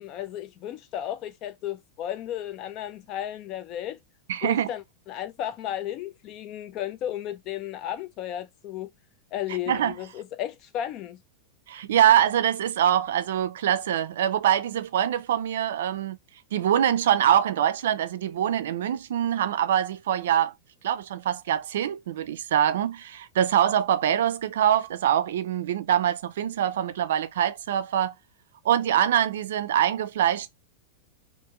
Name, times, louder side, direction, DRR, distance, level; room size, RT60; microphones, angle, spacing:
voice 1, 0.0-4.0 4.4-8.9 9.3-11.2, left 11 dB, 35° left, 0.4 m, -34 dB
voice 2, 4.3-4.7 9.7-10.0 11.7-16.2 16.5-20.5 20.8-28.1 28.6-30.5, right 10 dB, 85° right, 0.4 m, -24 dB
2.5 x 2.3 x 2.9 m
supercardioid pair, 160°, 0 cm